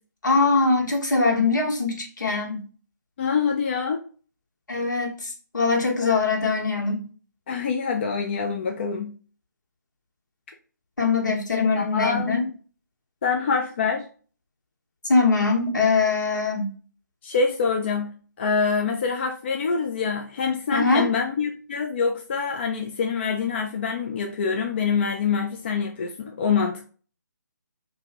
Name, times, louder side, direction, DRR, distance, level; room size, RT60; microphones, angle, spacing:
voice 1, 0.2-2.6 4.7-7.1 11.0-12.4 15.1-16.7 20.7-21.1, left 3 dB, 75° left, -1 dB, 1.5 m, -22 dB
voice 2, 3.2-4.0 7.5-9.1 11.8-12.5 13.2-14.1 17.2-18.1 18.4-26.9, left 5 dB, 35° left, 3 dB, 0.4 m, -25 dB
2.8 x 2.7 x 4.4 m, 0.40 s
figure-of-eight pair, 145°, 10 cm